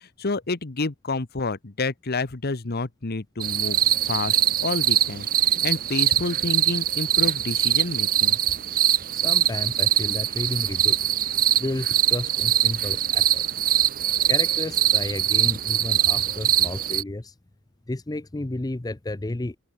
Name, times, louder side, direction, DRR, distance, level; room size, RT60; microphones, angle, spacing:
voice 1, 0.0-3.8 4.0-8.4, left 3 dB, 50° left, 1.1 m, -29 dB
sound 1, 3.4-17.0, right 12 dB, 45° right, 0.8 m, -22 dB
voice 2, 9.1-11.0 11.6-13.6 14.3-17.3 17.9-19.6, left 2 dB, 20° left, 0.6 m, -32 dB
head